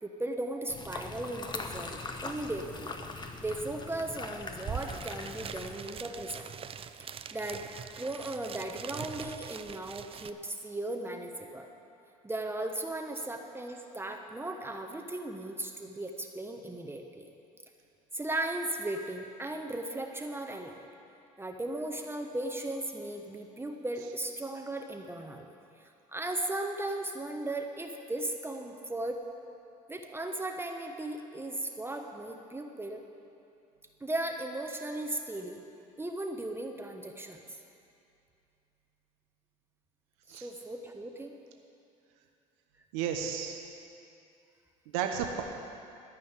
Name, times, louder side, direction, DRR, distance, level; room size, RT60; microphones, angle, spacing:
voice 1, 0.0-2.9 3.4-6.5 7.3-7.7 8.0-11.7 12.2-17.3 18.1-20.9 21.4-25.5 26.1-29.2 29.9-33.0 34.0-35.6 36.0-37.4 40.3-41.4, right 1 dB, 15° right, 3 dB, 1.1 m, -37 dB
sound 1, 0.7-5.8, left 3 dB, 25° left, 1.1 m, -41 dB
sound 2, 4.3-4.4 4.5-10.3, right 7 dB, 30° right, 0.5 m, -42 dB
voice 2, 42.9-43.6 44.9-45.4, right 8 dB, 75° right, 3 dB, 1.0 m, -32 dB
13.5 x 5.7 x 9.6 m, 2.6 s
hypercardioid pair, 75°, 18 cm